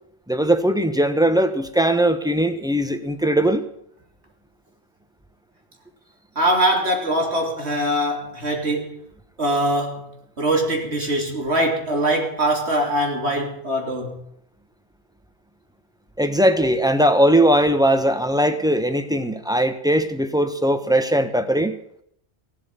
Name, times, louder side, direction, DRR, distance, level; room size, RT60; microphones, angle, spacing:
voice 1, 0.3-3.6 16.2-21.8, right 1 dB, 5° right, 1.1 m, -19 dB
voice 2, 6.4-9.0 9.4-10.1 10.4-14.2, right 1 dB, 75° right, 3.5 m, -22 dB
16.5 x 7.5 x 9.6 m
omnidirectional pair, 1.1 m